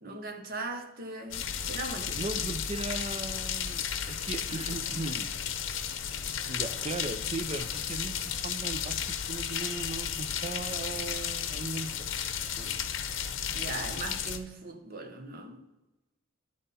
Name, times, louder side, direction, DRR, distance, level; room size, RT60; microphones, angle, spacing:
voice 1, 0.0-2.6 13.0-13.1 13.5-15.6, right 2 dB, 50° right, 5 dB, 1.1 m, -39 dB
sound 1, 1.3-14.4, left 8 dB, 90° left, 0.7 m, -34 dB
voice 2, 2.2-5.3 5.7-5.9 6.5-12.0 12.6-12.8, right 3 dB, 30° right, 11 dB, 0.5 m, -38 dB
12.0 x 5.6 x 4.1 m, 1.0 s
head